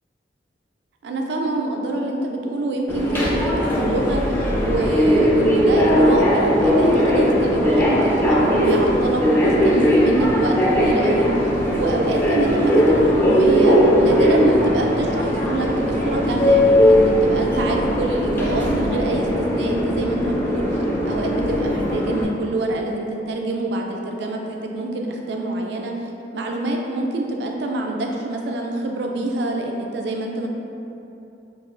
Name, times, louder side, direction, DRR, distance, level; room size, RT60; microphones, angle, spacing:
voice 1, 1.0-11.3 11.8-20.6 21.0-25.9 26.3-30.5, right 2 dB, 70° right, 1 dB, 0.3 m, -25 dB
Subway metro underground, 2.9-22.2, equal, 10° left, 0.3 m, -18 dB
4.0 x 2.3 x 2.5 m, 2.8 s
head